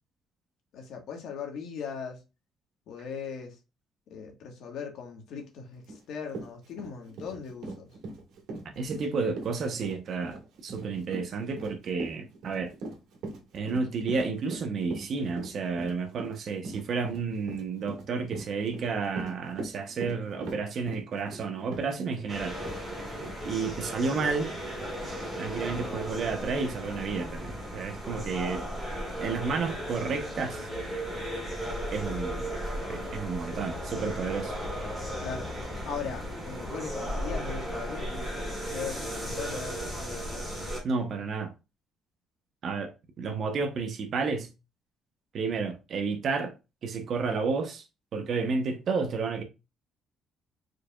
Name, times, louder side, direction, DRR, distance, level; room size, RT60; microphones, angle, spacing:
voice 1, 0.7-2.2 2.9-3.6 4.1-7.9 35.2-40.5, left 6 dB, 65° left, 1.4 m, -39 dB
Run, 5.9-6.0 6.3-22.3 22.6-22.8 23.2-23.3, right 2 dB, 85° right, 1.7 m, -40 dB
voice 2, 8.7-12.7 13.5-22.6 23.4-24.5 25.4-28.7 29.2-30.6 31.9-32.5 32.9-34.5 40.8-41.5 42.6-44.5 45.3-46.5 46.8-47.8 48.1-49.4, right 4 dB, 40° right, 0.8 m, -31 dB
sound 1, 22.3-40.8, equal, 5° right, 2.1 m, -35 dB
4.7 x 4.7 x 2.3 m
cardioid pair, 180°, 0 cm